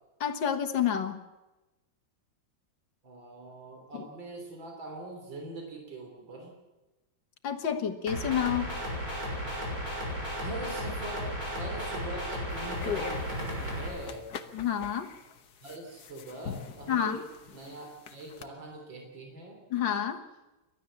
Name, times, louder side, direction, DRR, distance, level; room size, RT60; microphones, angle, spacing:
voice 1, 0.2-1.2 3.9-4.1 7.4-8.7 14.5-15.1 16.9-17.2 19.7-20.2, left 9 dB, 75° left, 7 dB, 2.2 m, -29 dB
voice 2, 3.0-6.5 9.4-9.6 10.4-14.3 15.6-17.2 17.5-19.6, right 2 dB, 75° right, 2 dB, 4.1 m, -42 dB
sound 1, 8.1-13.9, equal, 50° right, 6.8 m, -34 dB
sound 2, 12.5-18.5, left 7 dB, 60° left, 1.6 m, -42 dB
29.5 x 12.5 x 7.3 m, 1.1 s
omnidirectional pair, 2.1 m